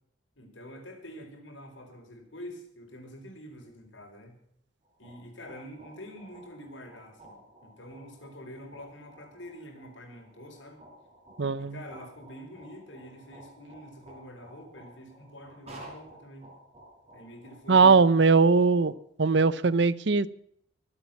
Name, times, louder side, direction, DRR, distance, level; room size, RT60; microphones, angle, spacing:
voice 1, 0.4-4.4 5.0-10.8 11.6-16.5 17.1-18.1, equal, 75° left, 4.9 m, -46 dB
sound 1, 4.8-18.9, right 1 dB, 30° right, 5.0 m, -53 dB
voice 2, 11.4-11.8 17.7-18.9 19.2-20.3, right 4 dB, 65° right, 0.7 m, -20 dB
23.5 x 8.6 x 5.8 m
head